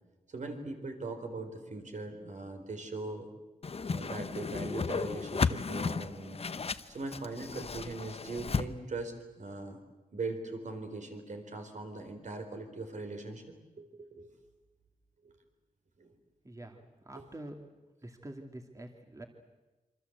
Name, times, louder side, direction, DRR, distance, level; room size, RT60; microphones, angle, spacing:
voice 1, 0.3-3.3 3.9-9.8 10.1-13.4 13.8-14.3 15.2-15.3 16.0-16.1, right 2 dB, 60° right, 5 dB, 4.4 m, -40 dB
Whoosh swoosh swish, 3.6-8.6, left 5 dB, 45° left, 1.0 m, -34 dB
voice 2, 16.4-17.6 18.0-19.3, right 1 dB, 25° right, 4 dB, 2.4 m, -46 dB
27.0 x 25.5 x 8.1 m, 1.1 s
wide cardioid pair, 130°, 14 cm